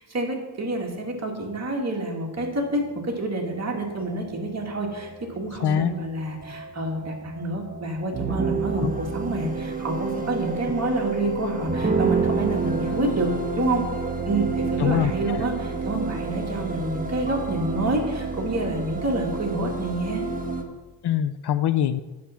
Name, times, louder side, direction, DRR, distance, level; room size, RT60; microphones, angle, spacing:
voice 1, 0.0-5.1 5.3-13.3 13.6-13.8 14.3-20.2, right 2 dB, 35° right, 0 dB, 2.2 m, -28 dB
sound 1, 2.4-20.6, right 3 dB, 20° right, 1.2 m, -30 dB
voice 2, 5.6-5.9 8.8-8.9 14.8-15.4 21.0-22.0, left 9 dB, 60° left, 14 dB, 0.5 m, -23 dB
9.2 x 7.4 x 5.7 m, 1.2 s
wide cardioid pair, 110°, 45 cm